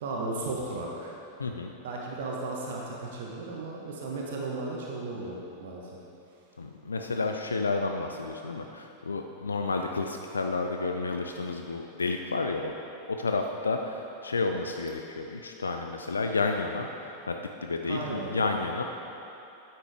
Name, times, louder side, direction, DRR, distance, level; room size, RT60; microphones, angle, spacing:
voice 1, 0.0-1.1 1.8-5.8 17.9-18.3, right 3 dB, 55° right, -2 dB, 0.9 m, -35 dB
voice 2, 1.4-1.7 6.6-12.7 13.1-18.8, left 3 dB, 75° left, 4 dB, 0.3 m, -31 dB
9.5 x 5.8 x 3.4 m, 2.9 s
figure-of-eight pair, 90°, 0 cm